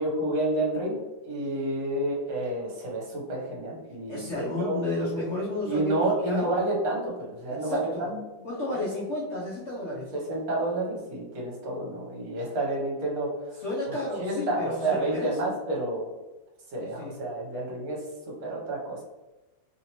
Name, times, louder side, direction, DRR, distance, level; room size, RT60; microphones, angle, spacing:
voice 1, 0.0-4.8 5.6-8.2 8.7-8.8 9.9-13.6 13.9-16.1 16.7-18.0 18.4-19.0, right 1 dB, 55° right, -2 dB, 1.3 m, -30 dB
voice 2, 4.1-6.0 6.2-6.5 7.5-8.1 8.4-10.1 13.6-15.5 16.8-17.1, left 1 dB, 60° left, -7 dB, 0.8 m, -32 dB
3.2 x 2.8 x 2.9 m, 1.1 s
omnidirectional pair, 2.1 m